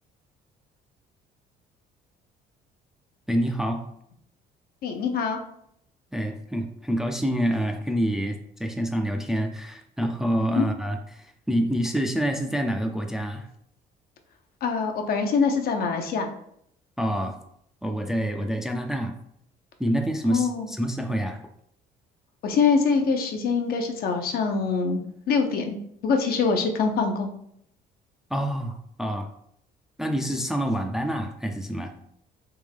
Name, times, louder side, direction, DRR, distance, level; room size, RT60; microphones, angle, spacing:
voice 1, 3.3-3.8 6.1-13.5 17.0-17.4 17.8-19.1 19.8-21.4 28.3-29.3 30.0-31.9, equal, 5° right, 4 dB, 0.4 m, -27 dB
voice 2, 4.8-5.4 10.6-10.7 14.6-16.3 20.3-20.7 22.4-25.8 26.0-27.3, left 5 dB, 65° left, 4 dB, 0.7 m, -24 dB
3.5 x 3.1 x 3.4 m, 0.71 s
cardioid pair, 110°, 17 cm